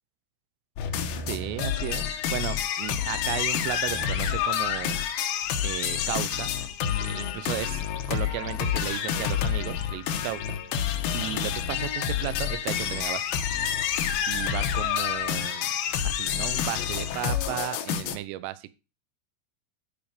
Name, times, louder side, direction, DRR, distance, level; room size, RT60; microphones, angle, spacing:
sound 1, 0.8-18.2, left 9 dB, 80° left, 2.2 m, -28 dB
voice 1, 1.3-5.0 5.6-6.5 7.0-10.5 11.1-13.2 14.3-15.7 16.0-18.7, right 14 dB, 85° right, 14 dB, 3.3 m, -34 dB
12.0 x 5.3 x 5.0 m, 0.30 s
omnidirectional pair, 5.8 m